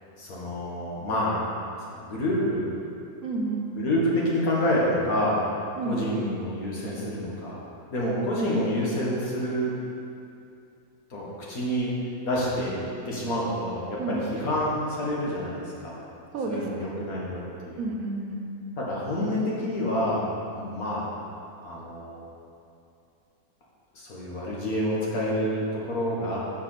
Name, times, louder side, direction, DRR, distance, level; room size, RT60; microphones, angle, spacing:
voice 1, 0.2-1.4 1.9-2.7 3.8-5.4 5.9-7.6 7.9-9.7 11.1-11.9 12.2-12.8 13.1-16.0 16.5-17.8 18.8-21.1 21.6-22.2 23.9-26.4, equal, 75° left, -5 dB, 2.1 m, -28 dB
voice 2, 3.2-3.9 5.8-6.2 14.0-14.4 16.3-17.0 17.8-18.8, right 3 dB, 75° right, 1 dB, 1.3 m, -31 dB
6.6 x 5.1 x 6.6 m, 2.6 s
omnidirectional pair, 1.5 m